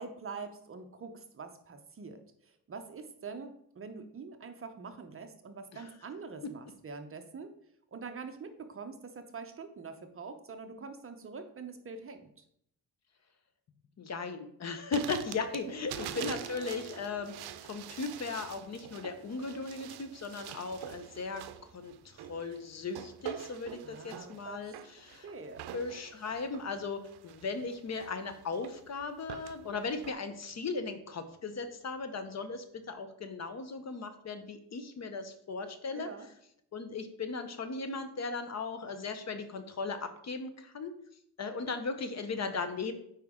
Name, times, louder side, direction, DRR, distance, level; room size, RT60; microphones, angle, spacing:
voice 1, 0.0-7.5 7.9-12.3 16.0-16.4 23.8-24.8 25.2-25.7 35.9-36.3, right 4 dB, 35° right, 7 dB, 0.8 m, -45 dB
voice 2, 14.0-17.4 17.6-21.4 21.7-25.3 25.7-36.1 36.7-41.0 41.4-42.9, left 4 dB, 40° left, 9 dB, 0.8 m, -37 dB
sound 1, 14.9-30.1, right 11 dB, 75° right, 0.6 m, -46 dB
sound 2, 15.4-32.9, right 4 dB, 5° left, 1.2 m, -56 dB
8.8 x 4.9 x 3.6 m, 0.71 s
cardioid pair, 135°, 40 cm